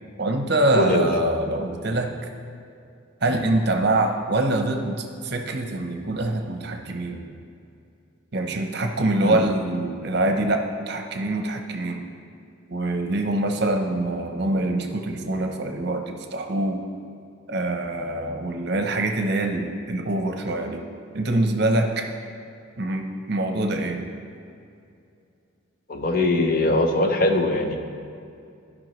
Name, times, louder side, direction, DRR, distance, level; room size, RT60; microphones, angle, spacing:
voice 1, 0.2-2.3 3.2-7.3 8.3-12.0 12.7-16.8 17.5-20.8 21.1-22.1 22.8-24.0, right 2 dB, 55° right, 4 dB, 0.8 m, -24 dB
voice 2, 0.7-1.1 3.3-3.5 9.2-9.4 25.9-27.8, left 2 dB, 45° left, 4 dB, 0.7 m, -21 dB
15.0 x 5.4 x 3.1 m, 2.5 s
head